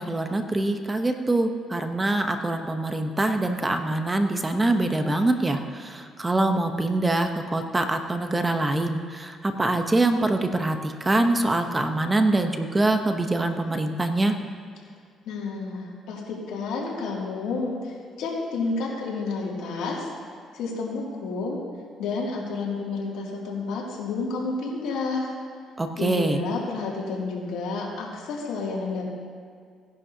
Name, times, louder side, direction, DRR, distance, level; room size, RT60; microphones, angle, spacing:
voice 1, 0.0-14.4 25.8-26.4, right 2 dB, 20° right, 6 dB, 0.9 m, -24 dB
voice 2, 15.3-20.1 20.5-21.6 22.0-25.3 26.0-29.0, left 3 dB, 85° left, -3 dB, 2.6 m, -30 dB
17.5 x 11.0 x 2.8 m, 2.1 s
cardioid pair, 90°, 0 cm